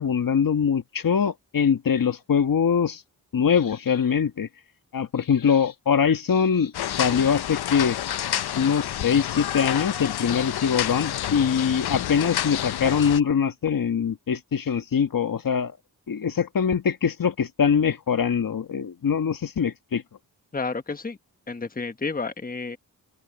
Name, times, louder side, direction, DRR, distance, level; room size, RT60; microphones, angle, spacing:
voice 1, 0.0-3.0 3.3-4.5 4.9-6.7 7.0-8.0 8.6-15.7 16.1-20.0, left 7 dB, 60° left, 1.5 m, -23 dB
sound 1, 6.7-13.2, left 11 dB, 80° left, 0.7 m, -29 dB
voice 2, 20.5-21.2 21.5-22.8, left 4 dB, 25° left, 1.2 m, -30 dB
cardioid pair, 60°, 38 cm